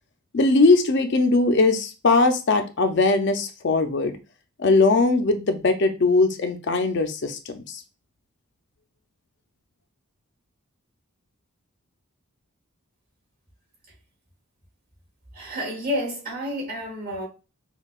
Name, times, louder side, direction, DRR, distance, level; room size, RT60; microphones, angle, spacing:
voice 1, 0.3-4.2 4.6-7.8, left 3 dB, 50° left, 0.4 m, -20 dB
voice 2, 15.3-17.3, equal, 40° right, 1.7 m, -30 dB
5.4 x 2.2 x 2.3 m
head